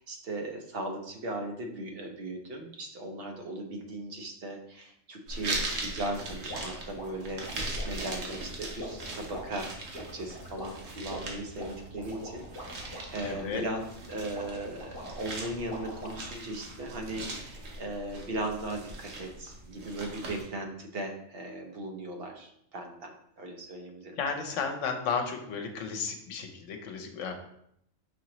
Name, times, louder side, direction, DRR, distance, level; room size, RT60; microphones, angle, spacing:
voice 1, 0.0-13.8 14.1-24.2, right 1 dB, 55° right, 3 dB, 0.8 m, -38 dB
sound 1, 5.3-20.5, right 2 dB, 85° right, 1.2 m, -40 dB
sound 2, 6.5-16.4, equal, 50° left, 1.2 m, -44 dB
voice 2, 13.2-13.7 24.2-27.3, left 5 dB, 80° left, 4 dB, 1.0 m, -33 dB
5.1 x 2.9 x 2.9 m, 0.72 s
omnidirectional pair, 1.3 m